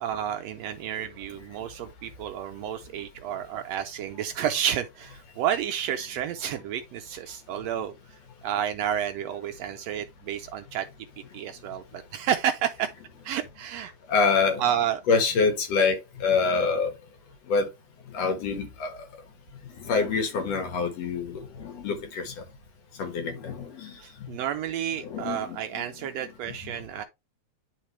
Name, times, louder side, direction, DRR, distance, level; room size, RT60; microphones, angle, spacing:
voice 1, 0.0-7.9 8.4-10.8 11.3-12.9 13.2-13.9 14.6-15.0 24.0-27.0, right 10 dB, 75° right, 1.6 m, -30 dB
voice 2, 14.1-14.7 15.0-16.9 17.5-17.7 18.1-19.1 19.7-22.4 23.0-24.0 25.0-26.3 26.6-26.7, left 4 dB, 65° left, 2.4 m, -26 dB
10.0 x 4.0 x 3.1 m
omnidirectional pair, 3.3 m